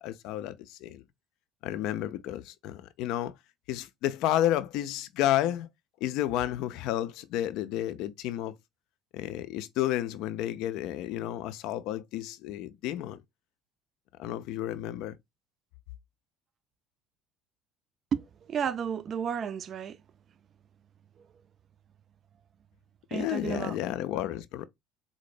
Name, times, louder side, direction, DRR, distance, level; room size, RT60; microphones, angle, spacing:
voice 1, 0.0-1.0 1.6-3.3 3.7-5.7 6.0-8.5 9.1-13.2 14.2-15.2 23.1-24.6, left 13 dB, 60° left, 0.3 m, -31 dB
voice 2, 18.1-20.0 23.1-23.7, right 7 dB, 40° right, 0.4 m, -32 dB
3.9 x 2.0 x 3.1 m
figure-of-eight pair, 60°, 0 cm